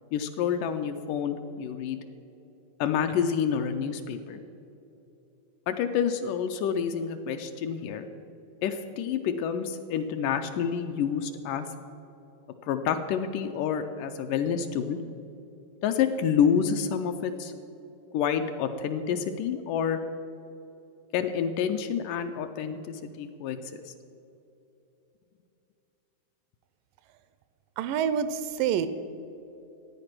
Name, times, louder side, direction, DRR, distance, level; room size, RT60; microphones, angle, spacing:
voice 1, 0.1-2.0 2.8-4.4 5.7-8.1 8.6-11.7 12.6-15.0 15.8-17.5 18.1-20.0 21.1-23.9, left 7 dB, 80° left, 7 dB, 2.0 m, -28 dB
voice 2, 27.8-28.9, right 8 dB, 80° right, 12 dB, 2.1 m, -27 dB
14.0 x 9.6 x 6.0 m, 2.9 s
omnidirectional pair, 4.1 m